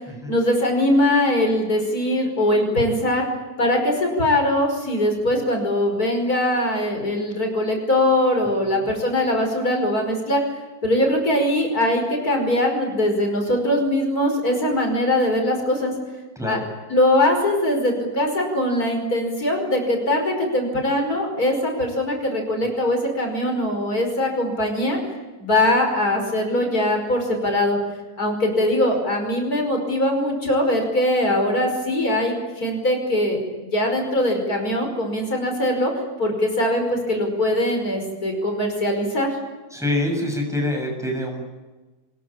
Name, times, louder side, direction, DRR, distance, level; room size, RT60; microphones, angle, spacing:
voice 1, 0.3-3.2 3.6-10.4 10.8-15.9 16.4-16.6 16.9-25.0 25.4-27.8 28.2-35.9 36.2-39.4, left 1 dB, 65° left, 3 dB, 5.8 m, -21 dB
voice 2, 39.7-41.4, left 1 dB, ahead, 1 dB, 7.0 m, -25 dB
25.0 x 21.5 x 8.8 m, 1.2 s
omnidirectional pair, 1.7 m